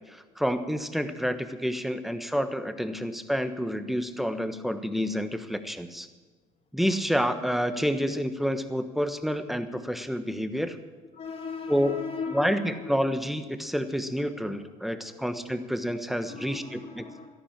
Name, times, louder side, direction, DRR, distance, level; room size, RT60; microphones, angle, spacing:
voice 1, 0.1-6.1 6.7-10.8 11.7-12.0 12.3-16.6 17.0-17.1, equal, ahead, 10 dB, 1.3 m, -29 dB
voice 2, 11.1-13.0 13.7-13.8 14.5-17.3, left 5 dB, 40° left, -4 dB, 2.7 m, -40 dB
13.5 x 11.5 x 7.4 m, 1.3 s
hypercardioid pair, 60°, 18 cm